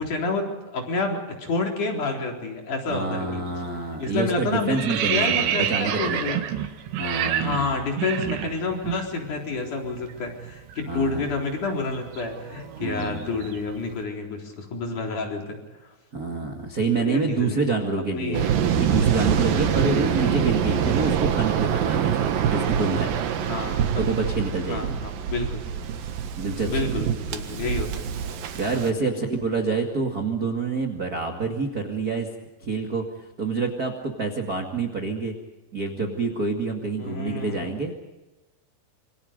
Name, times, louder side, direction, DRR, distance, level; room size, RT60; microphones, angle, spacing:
voice 1, 0.0-3.4 4.0-6.4 7.4-15.6 17.0-17.6 18.1-18.5 20.1-20.5 23.5-24.0 24.7-25.6 26.7-27.9 29.0-29.3 37.0-37.7, left 3 dB, 45° left, 1 dB, 5.3 m, -29 dB
voice 2, 2.9-6.4 7.0-7.7 10.9-11.3 12.8-13.3 16.1-18.5 18.8-23.1 24.0-25.0 26.4-26.7 28.5-32.3 32.6-33.0 33.4-35.3 35.7-37.9, right 4 dB, 35° right, 3 dB, 1.6 m, -27 dB
sound 1, 3.5-3.8 4.1-9.0 9.3-9.5 9.8-13.8, right 10 dB, 85° right, 4.0 m, -29 dB
Waves surf, 18.3-28.9, right 8 dB, 60° right, 2.9 m, -25 dB
27.0 x 25.0 x 5.3 m, 1.1 s
omnidirectional pair, 5.0 m